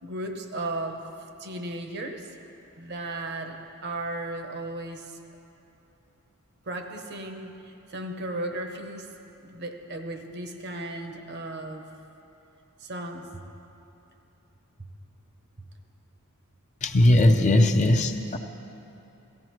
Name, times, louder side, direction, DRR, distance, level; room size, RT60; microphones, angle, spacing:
voice 1, 0.0-1.1 1.4-2.3 2.8-5.2 6.7-9.1 9.4-11.8 12.8-13.4 17.4-17.7, right 2 dB, 50° right, 5 dB, 1.0 m, -35 dB
voice 2, 16.8-18.4, left 1 dB, 35° left, 4 dB, 0.5 m, -19 dB
17.5 x 15.0 x 3.1 m, 2.9 s
head